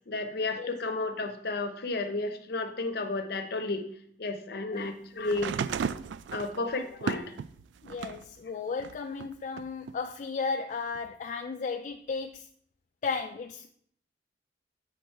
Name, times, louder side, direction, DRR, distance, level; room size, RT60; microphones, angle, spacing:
voice 1, 0.1-3.9 4.2-5.6 6.3-7.3, left 3 dB, 60° left, 8 dB, 0.7 m, -32 dB
sound 1, 5.3-8.3 8.8-9.9 11.0-11.1, right 7 dB, 85° right, 0.3 m, -35 dB
voice 2, 7.8-12.5 13.0-13.7, left 4 dB, 45° left, 4 dB, 0.3 m, -34 dB
8.0 x 3.8 x 4.5 m, 0.64 s
head